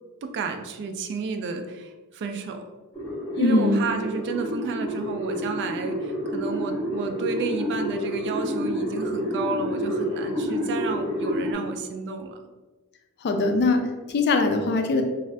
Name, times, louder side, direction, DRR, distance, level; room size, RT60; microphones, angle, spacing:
voice 1, 0.2-2.6 3.4-12.4, right 4 dB, 50° right, 6 dB, 0.3 m, -31 dB
sound 1, 2.9-11.5, equal, 10° left, 0.8 m, -29 dB
voice 2, 3.3-3.9 13.2-15.0, left 2 dB, 50° left, 5 dB, 0.4 m, -22 dB
2.5 x 2.4 x 3.2 m, 1.2 s
head